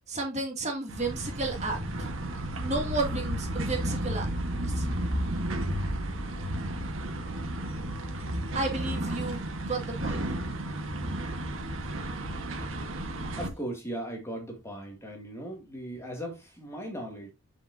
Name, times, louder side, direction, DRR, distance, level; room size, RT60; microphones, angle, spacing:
voice 1, 0.1-4.3 4.7-4.9 8.5-9.4 9.7-10.2, right 2 dB, 30° right, 2.2 m, -32 dB
sound 1, 0.9-13.5, right 1 dB, 70° right, 1.3 m, -32 dB
voice 2, 13.4-17.3, right 1 dB, 15° left, 2.1 m, -38 dB
7.6 x 6.8 x 2.7 m
head